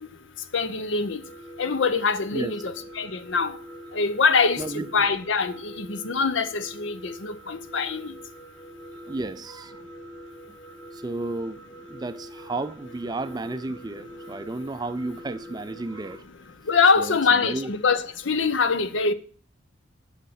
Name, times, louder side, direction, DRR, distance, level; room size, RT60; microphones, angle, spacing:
voice 1, 0.5-1.2 1.6-3.5 3.9-8.1 16.7-19.1, left 4 dB, 75° left, 0.7 m, -24 dB
sound 1, 1.2-16.2, right 1 dB, 10° left, 0.8 m, -44 dB
voice 2, 4.6-4.9 9.1-9.8 10.5-10.6 10.9-16.3 17.0-17.7, right 2 dB, 20° right, 0.4 m, -33 dB
8.2 x 6.4 x 5.7 m
head